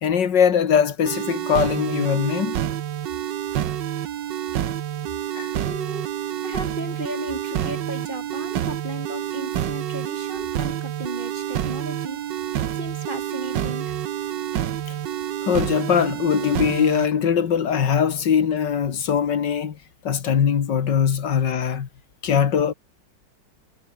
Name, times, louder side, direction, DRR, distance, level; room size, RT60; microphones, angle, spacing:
voice 1, 0.0-2.6 5.4-5.5 15.5-19.8 20.0-21.9 22.2-22.7, left 7 dB, 80° left, 2.2 m, -21 dB
sound 1, 1.1-17.1, right 10 dB, 90° right, 1.7 m, -28 dB
voice 2, 5.6-6.1 6.4-12.2 12.7-14.0, right 1 dB, 25° right, 4.9 m, -35 dB
omnidirectional pair, 1.9 m